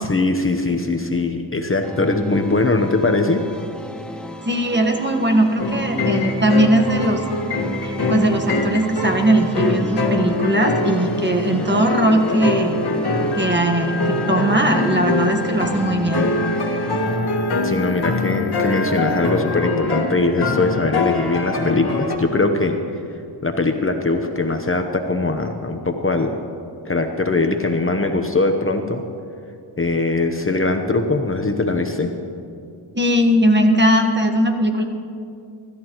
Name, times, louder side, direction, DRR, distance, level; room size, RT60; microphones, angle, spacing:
voice 1, 0.0-3.4 17.6-22.8 23.4-26.4 26.8-29.0 29.8-32.1, left 3 dB, 25° left, 5 dB, 1.0 m, -21 dB
sound 1, 1.8-17.2, equal, ahead, 1.2 m, -33 dB
voice 2, 4.4-7.2 7.8-12.8 13.3-16.3 32.9-34.8, right 1 dB, 25° right, 3 dB, 1.5 m, -19 dB
sound 2, 5.6-22.2, left 2 dB, 55° left, 1.8 m, -24 dB
Organ, 13.3-19.7, left 6 dB, 75° left, 1.1 m, -34 dB
24.5 x 13.5 x 3.1 m, 2.4 s
cardioid pair, 80°, 47 cm